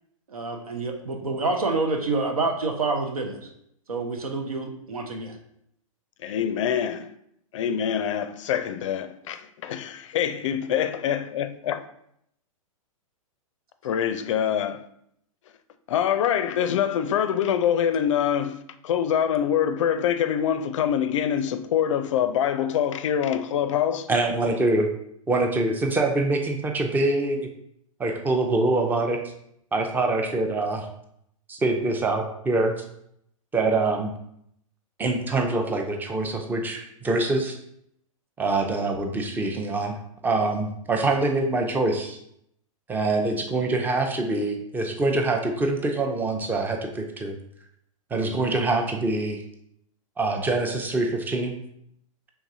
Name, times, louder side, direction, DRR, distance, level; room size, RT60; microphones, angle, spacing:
voice 1, 0.3-3.5 3.9-5.4, right 3 dB, 90° right, 0.8 m, -27 dB
voice 2, 6.2-7.1 7.5-11.8 13.8-14.8 15.9-24.1, left 9 dB, 60° left, 0.4 m, -25 dB
voice 3, 24.1-24.9 25.3-27.4 28.0-29.2 29.7-30.8 31.5-32.7 33.5-34.1 35.0-37.5 38.4-39.9 40.2-42.2 42.9-47.3 48.1-49.4 50.2-51.5, right 2 dB, 10° right, 0.5 m, -24 dB
4.6 x 3.4 x 2.7 m
hypercardioid pair, 115°, 18 cm